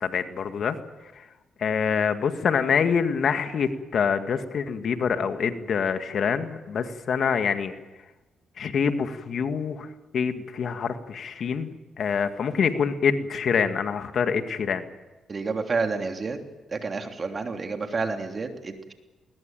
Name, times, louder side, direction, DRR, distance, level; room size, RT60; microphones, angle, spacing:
voice 1, 0.0-0.8 1.6-7.7 8.6-9.9 10.1-14.8, left 6 dB, 60° left, 8 dB, 1.9 m, -25 dB
voice 2, 15.3-16.4 16.7-18.9, right 4 dB, 40° right, 5 dB, 3.2 m, -29 dB
21.0 x 20.5 x 9.1 m, 1.1 s
supercardioid pair, 70°, 0 cm